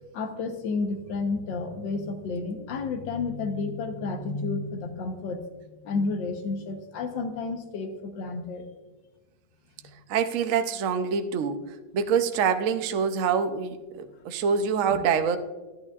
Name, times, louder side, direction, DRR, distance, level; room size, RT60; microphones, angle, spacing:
voice 1, 0.1-5.4 5.8-8.6 14.9-15.0, left 3 dB, 75° left, 6 dB, 1.6 m, -31 dB
voice 2, 10.1-15.4, right 6 dB, 70° right, 8 dB, 0.7 m, -25 dB
12.0 x 11.0 x 2.4 m, 1.2 s
omnidirectional pair, 2.1 m